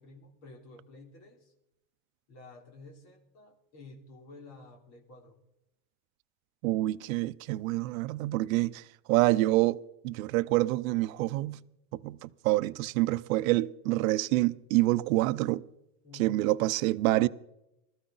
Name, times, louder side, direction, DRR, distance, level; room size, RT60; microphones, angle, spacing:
voice 1, 0.0-1.5 2.3-5.4 16.0-16.5, left 2 dB, 40° left, 3.4 m, -51 dB
voice 2, 6.6-9.8 10.0-11.6 11.9-15.6 16.2-17.3, right 18 dB, 75° right, 0.7 m, -27 dB
20.0 x 14.0 x 3.9 m
cardioid pair, 175°, 41 cm